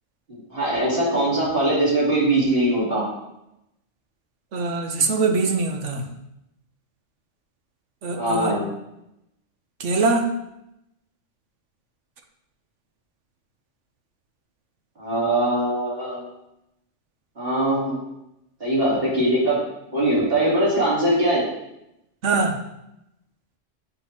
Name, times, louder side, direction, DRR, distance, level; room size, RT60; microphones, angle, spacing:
voice 1, 0.3-3.1 8.2-8.7 15.0-16.3 17.4-18.0 18.6-19.6 19.9-21.4, right 1 dB, 50° right, -8 dB, 3.2 m, -21 dB
voice 2, 4.5-6.0 8.0-8.5 9.8-10.3 22.2-22.6, right 4 dB, 75° right, 4 dB, 1.2 m, -22 dB
7.9 x 5.8 x 2.9 m, 0.86 s
omnidirectional pair, 1.3 m